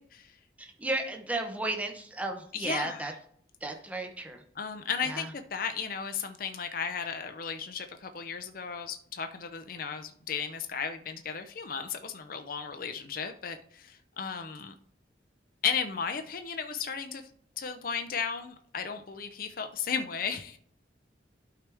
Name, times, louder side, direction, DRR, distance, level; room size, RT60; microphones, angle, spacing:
voice 1, 0.6-3.1 3.6-4.4 5.0-5.3, right 2 dB, 10° right, 3 dB, 0.9 m, -34 dB
voice 2, 2.5-3.1 4.6-14.7 15.6-17.2 17.6-20.6, left 6 dB, 50° left, 7 dB, 0.6 m, -35 dB
11.5 x 4.8 x 3.4 m, 0.62 s
head